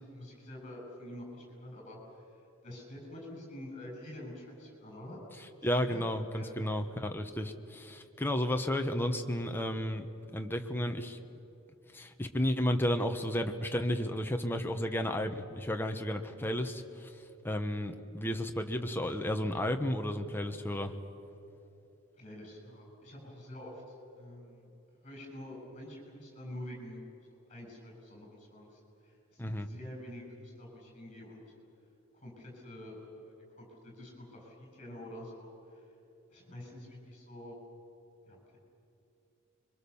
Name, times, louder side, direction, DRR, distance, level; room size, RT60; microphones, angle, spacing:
voice 1, 0.0-2.0 2.3-5.2 5.9-6.5 22.1-24.7 25.0-31.4 32.1-35.8 36.3-37.6 38.3-38.6, left 1 dB, 30° left, 0 dB, 7.5 m, -47 dB
voice 2, 5.6-10.1 10.3-11.2 11.9-17.1 17.4-20.9 29.4-29.7, left 1 dB, 10° left, 5 dB, 1.2 m, -32 dB
26.0 x 23.5 x 7.1 m, 2.9 s
head